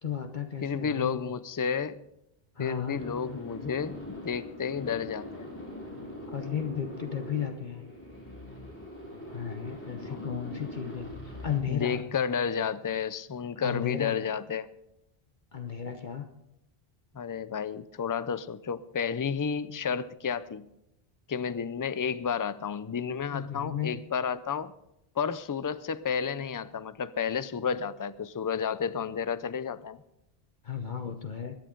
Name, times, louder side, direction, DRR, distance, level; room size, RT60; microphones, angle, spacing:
voice 1, 0.0-1.2 2.5-3.0 6.3-7.8 9.3-12.0 13.6-14.2 15.5-16.3 23.3-24.0 30.6-31.6, left 8 dB, 50° left, 6 dB, 1.1 m, -34 dB
voice 2, 0.6-2.0 2.6-5.5 10.1-10.3 11.7-14.7 17.1-20.7 21.3-24.7 25.2-30.0, left 6 dB, 30° left, 15 dB, 0.3 m, -31 dB
sound 1, 2.9-11.6, equal, 10° left, 4.3 m, -42 dB
22.0 x 10.5 x 3.8 m, 0.84 s
omnidirectional pair, 1.0 m